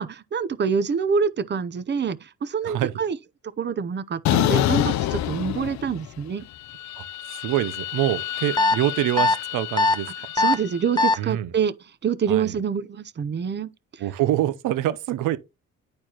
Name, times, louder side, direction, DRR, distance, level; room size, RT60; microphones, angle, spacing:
voice 1, 0.0-3.2 3.6-6.4 10.3-11.7 12.0-13.7, right 6 dB, 35° right, 0.6 m, -26 dB
sound 1, 4.3-6.2 6.5-10.8, left 13 dB, 65° left, 0.5 m, -27 dB
voice 2, 7.4-10.1 11.2-11.5 12.3-12.6 14.0-15.4, right 13 dB, 90° right, 0.7 m, -25 dB
sound 2, 8.6-8.8 9.2-9.3 9.8-10.0 10.4-10.5 11.0-11.1, left 2 dB, 15° left, 0.8 m, -19 dB
10.5 x 4.4 x 2.9 m
cardioid pair, 90°, 30 cm